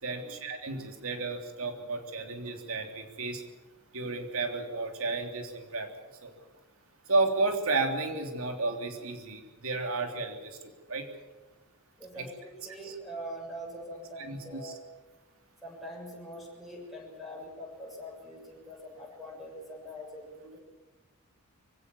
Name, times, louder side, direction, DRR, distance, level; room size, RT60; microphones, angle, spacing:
voice 1, 0.0-3.4 3.9-5.9 6.2-6.3 7.1-11.1 12.2-12.3 12.8-12.9 14.2-14.8, right 3 dB, 65° right, 4 dB, 3.3 m, -32 dB
voice 2, 12.0-14.8 15.6-20.6, equal, ahead, -1 dB, 6.9 m, -43 dB
24.5 x 16.5 x 7.1 m, 1.3 s
head